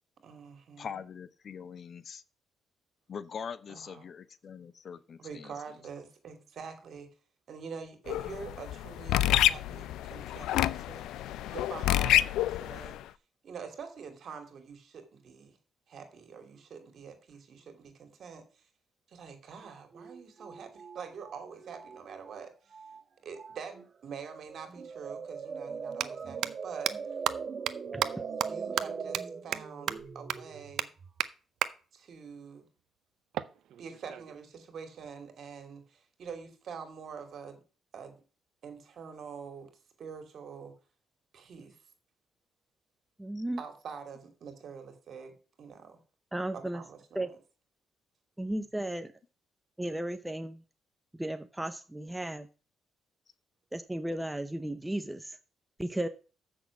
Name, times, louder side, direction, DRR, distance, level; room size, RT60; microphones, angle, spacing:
voice 1, 0.2-0.9 3.7-4.1 5.2-7.1 7.5-11.1 11.5-13.0 13.4-15.6 15.9-18.4 19.1-22.8 23.2-23.8 24.0-27.2 28.4-30.9 31.9-32.6 33.8-37.6 37.9-38.1 38.6-39.7 40.0-40.7 41.3-41.8 43.6-46.0 46.5-47.4, right 6 dB, 60° right, 6 dB, 2.7 m, -45 dB
voice 2, 0.8-2.2 3.1-5.5 43.4-43.5, left 7 dB, 50° left, 14 dB, 0.8 m, -42 dB
sound 1, 8.1-13.0, left 13 dB, 85° left, 0.4 m, -28 dB
sound 2, 19.6-19.7 19.9-22.5 22.7-23.0 23.4-23.9 24.3-31.2, right 5 dB, 45° right, 1.3 m, -41 dB
sound 3, 24.7-24.8 25.8-26.1 26.4-26.5 26.9-27.0 27.3-27.4 27.7-27.8 28.0-28.1 28.4-28.5 28.8-28.9 29.1-29.2 29.5-29.6 29.9-30.0 30.3-30.4 30.8-30.9 31.2-31.3 31.6-31.7 33.3-34.4, right 11 dB, 75° right, 0.6 m, -31 dB
voice 3, 27.9-28.2 43.2-43.6 46.3-46.8 47.1-47.3 48.4-49.1 49.8-50.6 51.1-52.5 53.7-55.4 55.8-56.1, right 1 dB, 10° right, 9 dB, 0.7 m, -35 dB
7.5 x 6.4 x 7.0 m, 0.36 s
cardioid pair, 90°, 0 cm